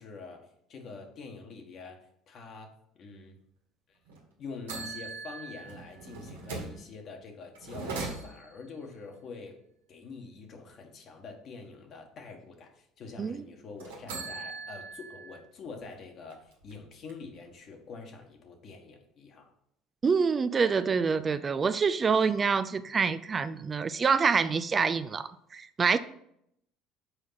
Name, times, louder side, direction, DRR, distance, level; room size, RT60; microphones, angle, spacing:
voice 1, 0.0-2.7 3.0-3.4 3.9-4.0 4.4-9.6 9.9-19.5, left 4 dB, 55° left, 3 dB, 1.6 m, -45 dB
sound 1, 4.1-4.2 4.7-6.8 7.5-8.7 13.8-15.4 15.8-15.9 16.3-17.4, right 4 dB, 90° right, 1.5 m, -40 dB
voice 2, 20.0-26.0, right 5 dB, 35° right, 13 dB, 0.4 m, -26 dB
6.4 x 4.6 x 5.7 m, 0.74 s
hypercardioid pair, 75°, 0 cm